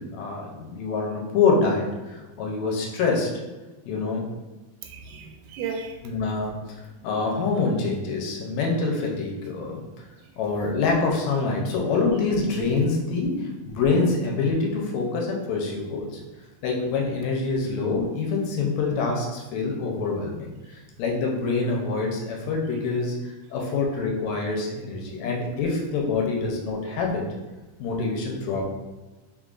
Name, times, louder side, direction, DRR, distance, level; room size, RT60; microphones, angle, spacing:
voice 1, 0.1-3.3 3.9-4.3 6.0-6.6 7.0-9.8 10.4-16.2 16.6-23.2 23.5-27.2 27.8-28.7, left 4 dB, 80° left, 0 dB, 1.8 m, -25 dB
voice 2, 4.8-6.0 10.2-10.3 25.0-25.4 26.9-27.0, right 5 dB, 85° right, 3 dB, 2.0 m, -36 dB
4.1 x 3.7 x 2.4 m, 1.2 s
omnidirectional pair, 3.4 m